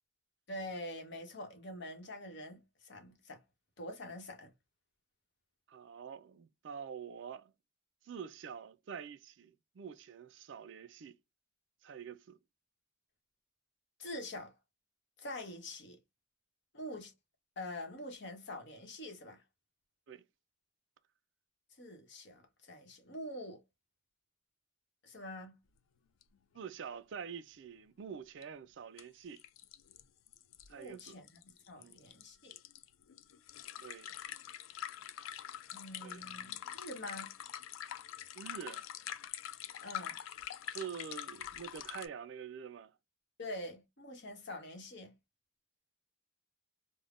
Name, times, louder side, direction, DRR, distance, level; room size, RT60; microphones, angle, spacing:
voice 1, 0.5-3.4 3.8-4.5 14.0-14.5 15.2-16.0 16.7-17.1 17.6-19.4 21.8-23.6 25.0-25.6 30.7-32.6 35.7-37.3 39.8-40.2 43.4-45.1, left 1 dB, 60° left, 0.9 m, -45 dB
voice 2, 5.7-7.5 8.0-11.2 11.8-12.4 20.1-20.2 26.5-29.4 30.7-31.2 31.8-32.0 33.8-34.1 36.0-36.2 38.4-38.9 40.7-42.9, right 7 dB, 65° right, 0.4 m, -46 dB
sound 1, 26.2-26.3 26.6-26.7 28.4-28.5 29.0-29.1 29.4-42.1, left 10 dB, 90° left, 0.4 m, -45 dB
3.4 x 2.1 x 2.4 m
head